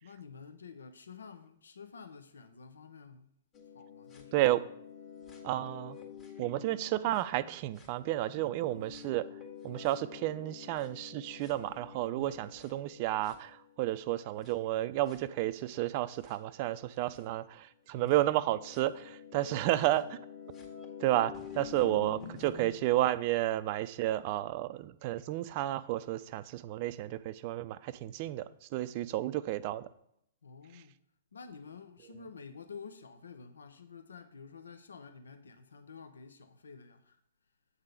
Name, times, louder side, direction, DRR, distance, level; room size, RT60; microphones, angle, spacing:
voice 1, 0.0-3.3 3.7-4.5 12.1-12.5 17.9-18.1 19.4-19.7 21.8-22.5 30.4-30.9 31.3-37.2, left 5 dB, 75° left, 0.6 m, -50 dB
sound 1, 3.5-7.4 7.8-13.9 14.4-14.5 15.1-15.2 16.2-16.3 17.1-17.2 18.1-22.6, left 7 dB, 30° left, 1.7 m, -48 dB
voice 2, 4.3-4.6 5.4-6.0 6.4-9.3 9.6-20.1 21.0-29.9 30.7-30.8, right 15 dB, 45° right, 0.4 m, -32 dB
8.0 x 3.7 x 6.5 m
figure-of-eight pair, 115°, 0 cm